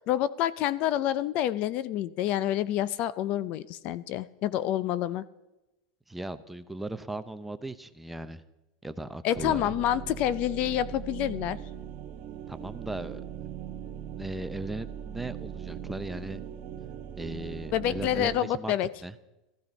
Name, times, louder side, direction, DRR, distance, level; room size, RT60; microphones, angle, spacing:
voice 1, 0.1-5.2 9.2-11.6 17.7-18.9, left 12 dB, 45° left, 18 dB, 0.5 m, -28 dB
voice 2, 6.1-8.4 8.8-9.7 12.5-13.5 14.1-16.4 17.2-18.8 19.0-19.1, right 1 dB, 5° right, 10 dB, 0.6 m, -37 dB
sound 1, 9.3-18.4, right 9 dB, 40° right, 1.2 m, -40 dB
15.5 x 14.5 x 5.3 m, 1.0 s
supercardioid pair, 150°, 3 cm